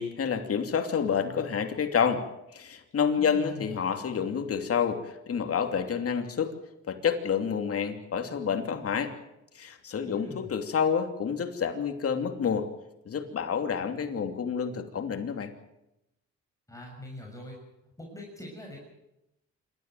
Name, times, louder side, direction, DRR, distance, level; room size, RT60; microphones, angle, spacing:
voice 1, 0.0-2.2 2.5-6.5 6.9-9.1 9.5-12.7 13.1-15.5, left 7 dB, 50° left, 6 dB, 2.9 m, -28 dB
voice 2, 3.2-3.8 10.0-10.5 16.7-17.6 18.0-18.8, left 1 dB, 10° left, -1 dB, 6.6 m, -42 dB
26.5 x 13.5 x 9.2 m, 0.89 s
cardioid pair, 90°, 30 cm